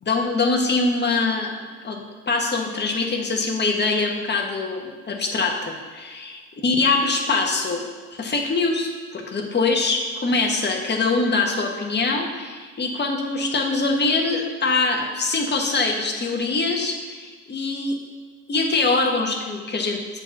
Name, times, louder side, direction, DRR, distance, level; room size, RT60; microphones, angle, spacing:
voice 1, 0.0-1.5 1.8-7.8 8.1-17.9 18.5-20.0, left 3 dB, 25° left, 2 dB, 1.4 m, -23 dB
7.9 x 4.5 x 6.1 m, 1.5 s
hypercardioid pair, 85°, 44 cm